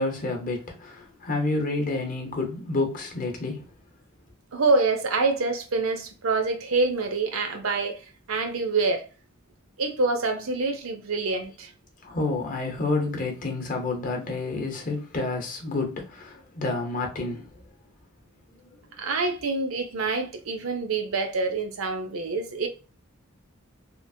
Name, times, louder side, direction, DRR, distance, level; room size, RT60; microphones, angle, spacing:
voice 1, 0.0-3.7 12.0-17.5, left 2 dB, 40° left, 0.8 m, -29 dB
voice 2, 4.5-8.0 8.3-9.0 9.8-11.7 19.0-22.7, right 3 dB, 85° right, 0.6 m, -26 dB
2.9 x 2.4 x 2.6 m
head